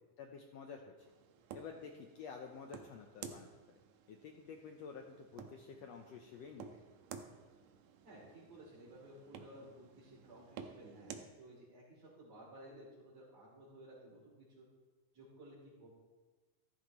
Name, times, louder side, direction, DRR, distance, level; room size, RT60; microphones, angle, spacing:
voice 1, 0.2-0.9 1.5-3.5 4.1-6.8, left 6 dB, 75° left, 3 dB, 1.6 m, -50 dB
sound 1, 1.0-11.3, right 7 dB, 75° right, 2.0 m, -54 dB
voice 2, 8.0-14.6 15.1-15.9, right 1 dB, 55° right, -8 dB, 4.2 m, -56 dB
14.5 x 13.0 x 3.0 m, 1.3 s
omnidirectional pair, 3.7 m